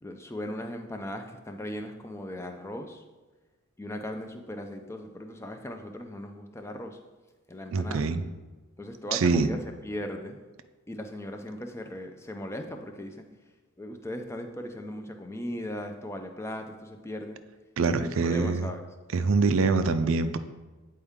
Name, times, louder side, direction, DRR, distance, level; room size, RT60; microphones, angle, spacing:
voice 1, 0.0-3.0 3.8-7.0 7.5-8.0 8.8-9.6 9.8-10.4 10.9-13.2 13.8-17.4 17.9-18.9, left 1 dB, 10° left, 5 dB, 0.4 m, -38 dB
voice 2, 7.7-8.2 9.1-9.5 17.8-18.7 19.1-20.4, right 4 dB, 65° right, 10 dB, 0.4 m, -24 dB
8.5 x 4.5 x 3.6 m, 1.2 s
head